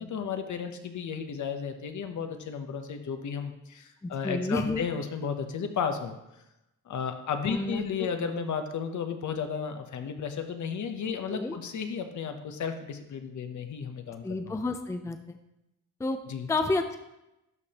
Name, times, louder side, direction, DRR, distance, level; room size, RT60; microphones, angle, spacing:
voice 1, 0.0-6.2 6.9-14.6 16.3-16.5, left 6 dB, 65° left, 7 dB, 0.9 m, -33 dB
voice 2, 4.0-4.8 7.5-8.1 11.3-11.6 14.2-15.4 16.0-16.2 16.5-17.0, left 2 dB, 10° left, 7 dB, 0.4 m, -30 dB
12.0 x 5.0 x 2.9 m, 0.90 s
cardioid pair, 120°, 31 cm